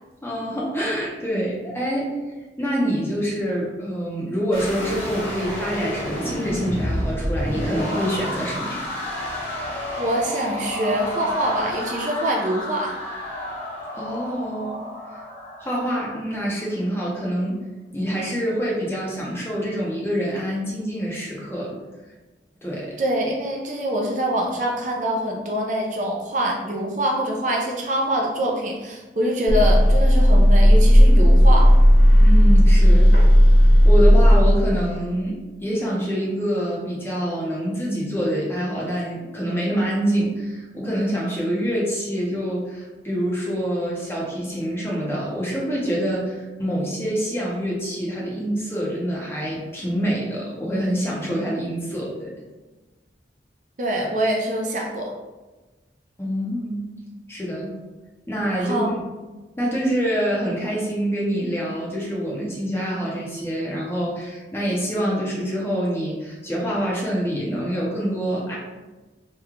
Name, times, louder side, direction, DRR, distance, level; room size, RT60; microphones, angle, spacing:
voice 1, 0.2-2.2 2.6-8.9 13.9-14.8 15.1-15.2 15.6-17.6 17.9-21.8 22.6-22.9 32.2-33.2 33.8-52.3 56.2-56.8 57.3-57.7 58.3-59.0 59.6-68.6, equal, 15° left, -4 dB, 0.6 m, -26 dB
sound 1, 4.5-16.6, left 1 dB, 50° left, 1.3 m, -30 dB
voice 2, 10.0-12.9 23.0-31.7 53.8-55.1 58.6-58.9, right 1 dB, 45° right, 0 dB, 0.4 m, -24 dB
sound 2, 29.5-34.8, equal, 65° left, 1.4 m, -13 dB
3.0 x 2.2 x 3.6 m, 1.2 s
head